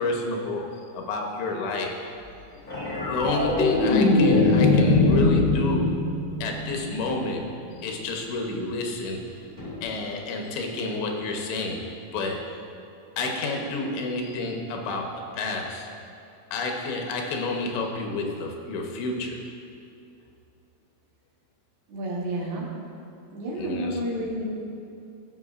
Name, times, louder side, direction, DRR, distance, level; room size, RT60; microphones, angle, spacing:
voice 1, 0.0-2.0 3.1-6.0 6.4-7.5 7.8-9.2 9.8-11.9 12.1-12.6 13.2-15.9 16.5-19.4 23.6-24.0, left 2 dB, 90° left, 2 dB, 3.1 m, -29 dB
sound 1, 2.7-7.2 9.6-9.7, left 2 dB, 30° left, 1.0 m, -21 dB
voice 2, 21.9-22.7 23.3-24.5, right 1 dB, 70° right, -4 dB, 3.0 m, -30 dB
16.5 x 6.2 x 2.4 m, 2.6 s
omnidirectional pair, 4.9 m